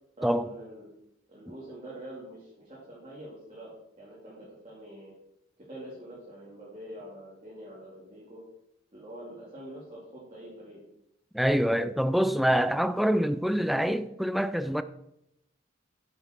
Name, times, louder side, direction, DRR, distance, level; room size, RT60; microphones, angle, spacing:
voice 1, 0.2-0.9 1.3-3.7 4.0-5.1 5.6-8.4 8.9-10.8, right 1 dB, 30° right, 2.8 m, -45 dB
voice 2, 11.3-14.8, equal, ahead, 0.4 m, -25 dB
9.5 x 7.7 x 4.5 m
head